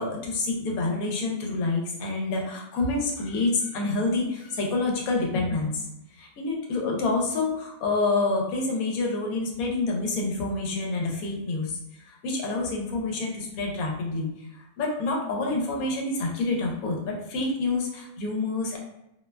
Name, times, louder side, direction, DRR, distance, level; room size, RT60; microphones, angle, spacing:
voice 1, 0.0-18.8, left 3 dB, 85° left, 0 dB, 1.1 m, -28 dB
2.6 x 2.1 x 2.2 m, 0.84 s
omnidirectional pair, 1.5 m